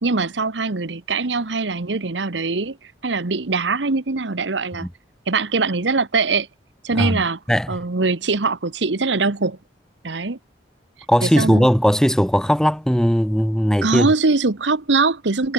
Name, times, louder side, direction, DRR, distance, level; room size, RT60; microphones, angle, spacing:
voice 1, 0.0-2.8 3.0-4.9 5.3-6.5 6.8-7.4 7.7-9.6 10.0-10.4 11.2-11.7 13.8-15.5, right 3 dB, 80° right, 1.2 m, -22 dB
voice 2, 7.5-7.8 11.1-14.1, equal, 5° left, 1.3 m, -18 dB
head